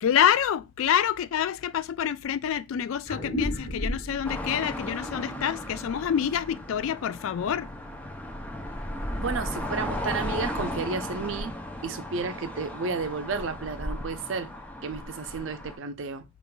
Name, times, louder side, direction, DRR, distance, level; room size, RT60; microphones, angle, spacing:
voice 1, 0.0-7.7, left 9 dB, 75° left, 0.3 m, -27 dB
sound 1, 3.0-7.9, equal, 40° left, 1.4 m, -36 dB
sound 2, 4.2-15.8, left 1 dB, 10° left, 0.5 m, -36 dB
voice 2, 9.1-11.5 11.8-14.5 14.8-16.2, right 4 dB, 65° right, 0.5 m, -32 dB
5.3 x 2.5 x 2.2 m
head